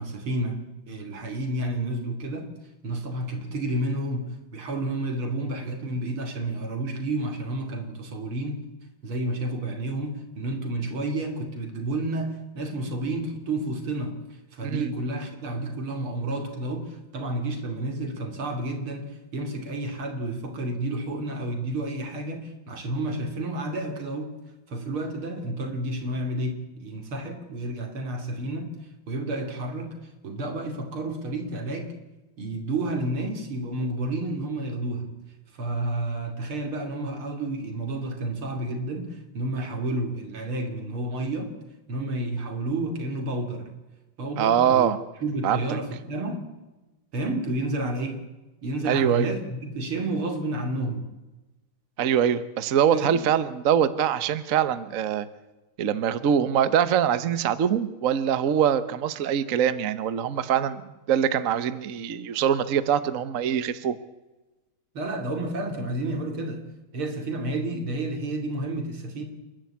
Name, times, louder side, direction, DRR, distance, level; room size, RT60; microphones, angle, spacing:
voice 1, 0.0-2.5 2.8-4.3 4.5-8.6 9.0-14.2 14.5-24.3 24.7-28.7 29.1-30.0 30.2-31.9 32.4-35.2 35.6-41.5 41.9-43.7 44.2-44.9 45.2-46.5 47.1-48.2 48.6-51.0 52.9-53.2 64.9-66.6 66.9-69.2, right 1 dB, 90° right, 5 dB, 3.8 m, -30 dB
voice 2, 44.4-45.0 45.4-45.6 48.8-49.3 52.0-55.3 55.8-64.0, right 9 dB, 50° right, 13 dB, 1.1 m, -23 dB
28.5 x 11.5 x 8.6 m, 1.1 s
omnidirectional pair, 2.3 m